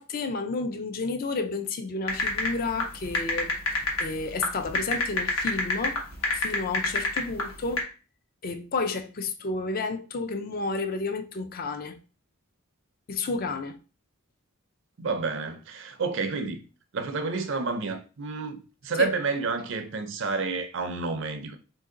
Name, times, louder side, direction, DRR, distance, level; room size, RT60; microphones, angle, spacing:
voice 1, 0.0-3.5 4.0-6.0 6.3-7.9 8.4-12.0 13.1-13.8 18.9-19.1, left 3 dB, 45° left, 0.4 m, -31 dB
sound 1, 2.1-7.8, left 3 dB, 75° left, 1.0 m, -27 dB
voice 2, 15.0-16.6 16.9-21.6, right 4 dB, 60° right, 0.5 m, -30 dB
2.9 x 2.6 x 3.7 m
head